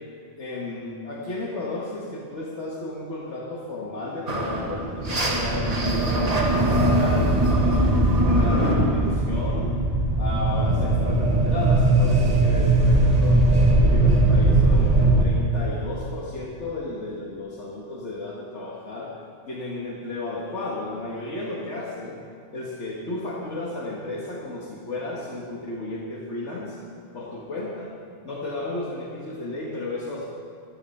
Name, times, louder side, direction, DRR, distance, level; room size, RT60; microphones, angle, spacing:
voice 1, 0.4-7.9 8.2-9.8 10.2-19.1 19.5-22.2 22.5-26.8 27.1-28.0 28.2-30.3, left 2 dB, 75° left, -3 dB, 1.8 m, -33 dB
sound 1, 4.3-15.2, right 2 dB, 35° right, 1.5 m, -20 dB
14.0 x 12.5 x 5.5 m, 2.4 s
omnidirectional pair, 1.2 m